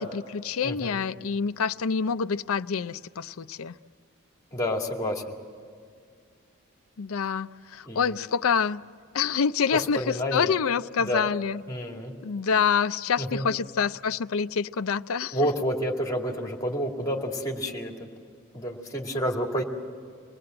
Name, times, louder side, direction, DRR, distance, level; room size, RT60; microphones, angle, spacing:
voice 1, 0.0-3.8 7.0-8.8 9.1-11.6 12.2-15.4, left 6 dB, 80° left, 13 dB, 0.5 m, -27 dB
voice 2, 0.6-1.0 4.5-5.3 7.9-8.1 9.7-10.5 11.0-11.2 11.7-12.1 13.2-13.4 15.3-18.1 18.5-19.6, equal, 15° left, 0 dB, 2.3 m, -29 dB
26.0 x 19.0 x 7.8 m, 2.3 s
head